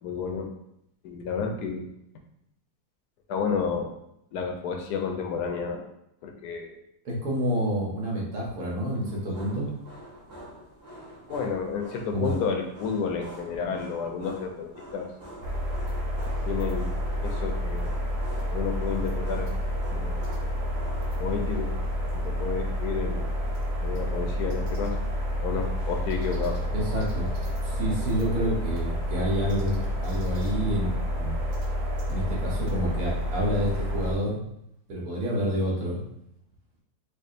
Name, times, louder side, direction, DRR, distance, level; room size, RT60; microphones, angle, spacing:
voice 1, 0.0-0.5 1.0-1.9 3.3-3.9 4.3-5.8 6.2-6.8 11.3-15.1 16.5-17.0 17.2-17.9 18.5-19.5 19.9-20.2 21.2-21.7 22.1-23.3 23.8-24.9 25.4-26.6, left 5 dB, 85° left, 3 dB, 1.1 m, -31 dB
voice 2, 7.0-9.7 12.1-12.3 26.7-27.3 27.6-31.4 32.1-34.4 34.9-36.0, equal, 70° right, -4 dB, 1.5 m, -28 dB
sound 1, 9.0-21.1, equal, 40° right, 1.2 m, -46 dB
sound 2, 15.4-34.1, equal, 90° right, 1.4 m, -29 dB
4.7 x 2.4 x 2.5 m, 0.78 s
omnidirectional pair, 1.7 m